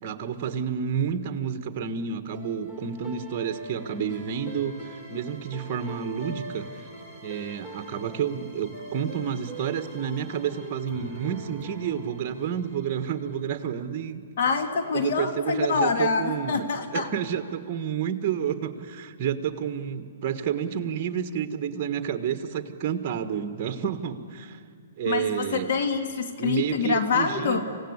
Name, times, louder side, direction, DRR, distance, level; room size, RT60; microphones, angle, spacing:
voice 1, 0.0-4.7 5.1-6.9 7.2-14.2 14.9-16.6 16.9-24.6 25.0-25.7 26.4-27.6, right 8 dB, 35° right, 9 dB, 1.6 m, -30 dB
sound 1, 2.3-13.6, right 1 dB, 20° left, 3.6 m, -43 dB
voice 2, 14.4-17.1 25.0-27.6, left 5 dB, 60° left, 6 dB, 2.1 m, -26 dB
27.0 x 16.5 x 8.2 m, 2.1 s
hypercardioid pair, 150°, 0 cm